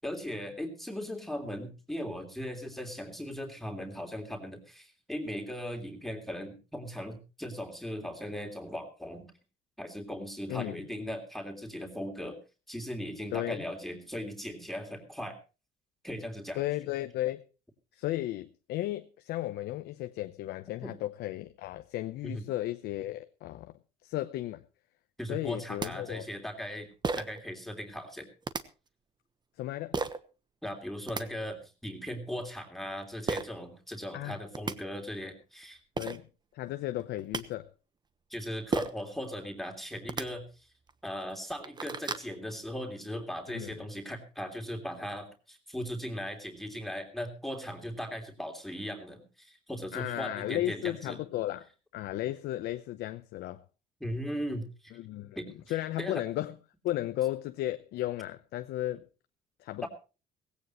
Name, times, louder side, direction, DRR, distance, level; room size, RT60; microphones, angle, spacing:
voice 1, 0.0-9.3 9.8-12.4 12.7-15.4 16.0-16.6 20.8-21.0 22.2-22.4 25.2-26.9 27.2-28.3 30.6-35.8 38.3-40.5 41.0-51.2 54.0-54.9 55.4-56.2 59.8-59.9, equal, ahead, 3.2 m, -38 dB
voice 2, 10.5-10.8 13.3-13.6 16.5-17.4 17.9-23.7 24.0-24.6 25.3-26.3 29.6-30.0 34.1-34.4 36.0-36.3 36.5-37.7 43.5-43.7 49.9-51.7 51.9-53.6 54.9-56.6 56.8-59.0 59.6-59.9, left 15 dB, 80° left, 0.8 m, -34 dB
sound 1, 25.5-25.6 25.8-25.9 27.0-27.4 28.4-28.6 29.9-30.2 30.9-31.2 33.3-33.5 34.2-34.3 34.5-34.7 35.6-35.7 36.0-36.2 37.0-37.4 38.7-39.0 40.0-40.2 40.9-41.0 41.4-42.3, right 4 dB, 25° right, 1.2 m, -33 dB
18.0 x 16.5 x 3.1 m
cardioid pair, 110°, 17 cm